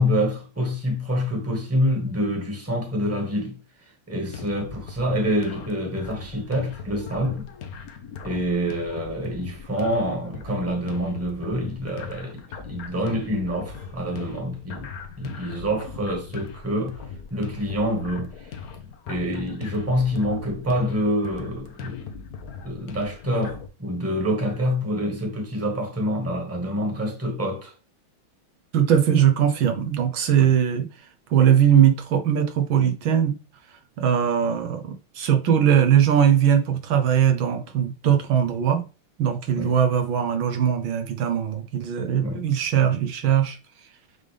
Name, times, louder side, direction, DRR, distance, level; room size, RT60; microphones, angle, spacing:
voice 1, 0.0-3.6 4.1-7.5 8.2-14.9 15.2-17.0 17.3-18.5 19.1-22.1 22.6-27.7 30.4-30.5 39.6-39.7 42.2-42.4, equal, 10° right, 1.6 m, -26 dB
sound 1, 4.3-23.7, left 6 dB, 55° left, 1.1 m, -39 dB
voice 2, 28.7-30.9 31.3-33.4 34.0-38.8 39.2-43.6, right 9 dB, 75° right, 1.8 m, -20 dB
7.9 x 3.7 x 3.4 m
omnidirectional pair, 2.2 m